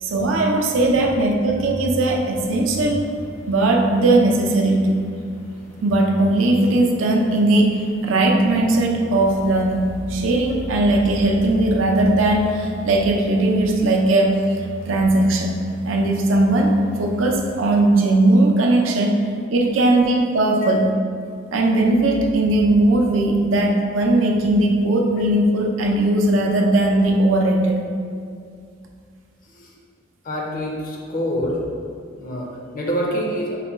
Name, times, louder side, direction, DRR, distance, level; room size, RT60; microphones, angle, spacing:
voice 1, 0.0-3.0 3.5-5.0 5.8-7.8 8.0-14.4 14.9-16.7 17.0-19.2 19.5-20.9 21.5-27.8, right 2 dB, 85° right, 1 dB, 0.5 m, -18 dB
sound 1, 2.1-17.8, right 2 dB, 90° left, 0.8 m, -38 dB
voice 2, 30.2-31.6 32.2-33.6, equal, 45° left, -1 dB, 0.5 m, -26 dB
4.0 x 2.1 x 4.3 m, 2.3 s
head